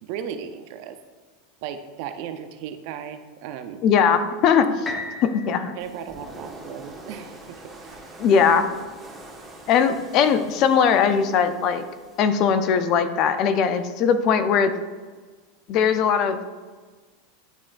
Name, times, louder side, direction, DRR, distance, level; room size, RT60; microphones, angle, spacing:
voice 1, 0.0-1.0 1.6-3.8 5.7-8.1, right 8 dB, 60° right, 8 dB, 0.6 m, -36 dB
voice 2, 3.8-4.9 5.2-5.8 8.2-8.7 9.7-11.8 12.2-14.7 15.7-16.4, left 7 dB, 50° left, 10 dB, 0.5 m, -20 dB
sound 1, 4.8-8.8 9.4-9.5, left 3 dB, 20° left, 1.1 m, -39 dB
sound 2, 5.8-12.2, right 2 dB, 15° right, 1.4 m, -44 dB
10.5 x 3.7 x 2.5 m, 1.4 s
hypercardioid pair, 100°, 0 cm